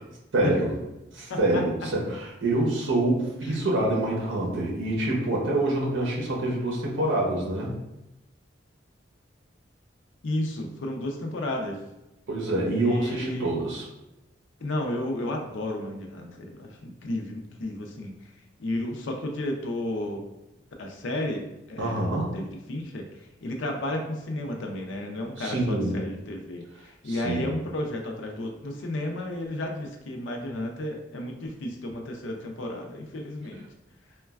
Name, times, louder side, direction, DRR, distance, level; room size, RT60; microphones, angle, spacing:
voice 1, 0.3-0.7 1.1-7.7 12.3-13.8 21.8-22.4 25.4-26.0 27.1-27.5, right 1 dB, 85° right, -2 dB, 0.6 m, -26 dB
voice 2, 1.3-1.6 3.5-3.6 10.2-11.8 12.7-13.5 14.6-18.1 18.6-20.2 20.8-23.1 23.4-33.6, left 1 dB, 85° left, 2 dB, 0.5 m, -32 dB
3.1 x 2.2 x 2.3 m, 0.93 s
head